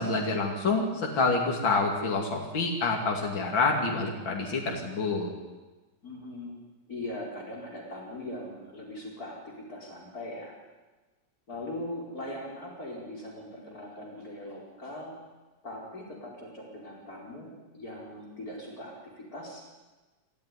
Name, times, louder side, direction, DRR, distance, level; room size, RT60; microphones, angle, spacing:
voice 1, 0.0-5.3, left 3 dB, 70° left, 0 dB, 3.3 m, -27 dB
voice 2, 6.0-6.5 6.9-10.5 11.5-15.2 15.6-19.7, left 1 dB, 45° left, -2 dB, 5.1 m, -40 dB
27.5 x 14.0 x 9.8 m, 1.2 s
omnidirectional pair, 2.2 m